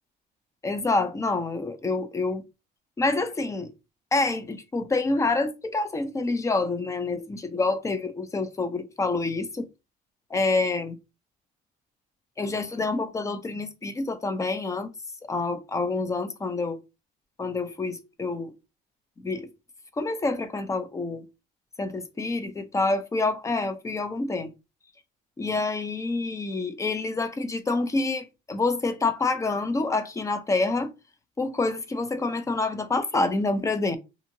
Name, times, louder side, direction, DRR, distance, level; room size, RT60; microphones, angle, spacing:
voice 1, 0.6-2.4 3.0-3.7 4.1-9.7 10.3-11.0 12.4-14.9 15.3-16.8 17.4-18.5 19.2-19.5 20.0-21.2 21.8-24.5 25.4-30.9 31.4-34.0, left 3 dB, 20° left, 0.5 m, -27 dB
2.7 x 2.7 x 2.6 m
cardioid pair, 110°, 17 cm